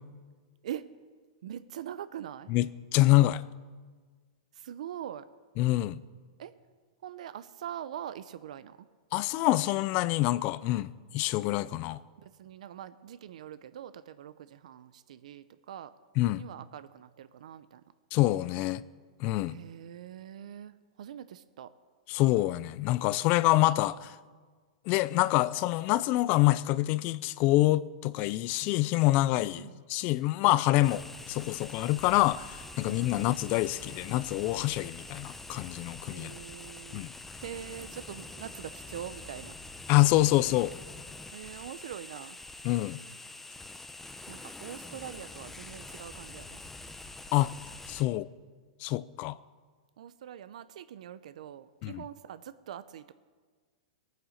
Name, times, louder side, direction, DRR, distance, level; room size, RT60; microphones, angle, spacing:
voice 1, 1.4-2.5 4.5-5.3 6.4-6.5 7.0-8.9 12.2-15.9 16.4-17.8 19.4-21.7 29.6-29.8 30.8-30.9 32.8-33.3 36.1-37.0 37.4-39.6 41.3-42.4 44.3-46.6 50.0-53.1, right 10 dB, 75° right, 0.7 m, -43 dB
voice 2, 2.9-3.4 5.6-6.0 9.1-12.0 16.2-16.4 18.1-18.8 19.2-19.6 22.1-24.2 24.9-31.0 31.3-36.3 36.9-37.1 39.9-40.7 42.6-43.0 47.3-47.5 47.9-48.3 48.8-49.4 51.8-52.0, left 17 dB, 40° left, 0.5 m, -26 dB
sound 1, 30.8-48.0, left 2 dB, 5° left, 0.8 m, -45 dB
18.0 x 9.3 x 6.5 m
hypercardioid pair, 135°, 4 cm